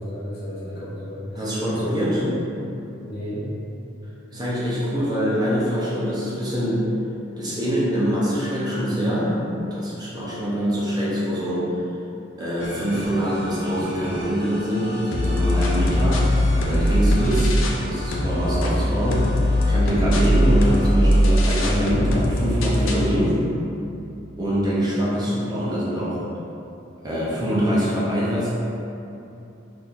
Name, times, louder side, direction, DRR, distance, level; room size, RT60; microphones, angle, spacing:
voice 1, 0.0-1.4 1.7-2.4 2.9-3.5, equal, 55° left, -8 dB, 0.9 m, -32 dB
voice 2, 1.3-2.2 4.3-6.8 7.4-9.4 9.7-11.8 12.4-16.2 16.6-23.4 23.8-24.0 24.4-26.2 27.0-28.5, equal, 20° right, -9 dB, 0.6 m, -24 dB
sound 1, 12.6-21.8, equal, 5° right, 1.2 m, -37 dB
sound 2, 15.1-17.9 18.1-23.1, equal, 75° left, 0.4 m, -20 dB
4.1 x 2.7 x 2.4 m, 2.8 s
head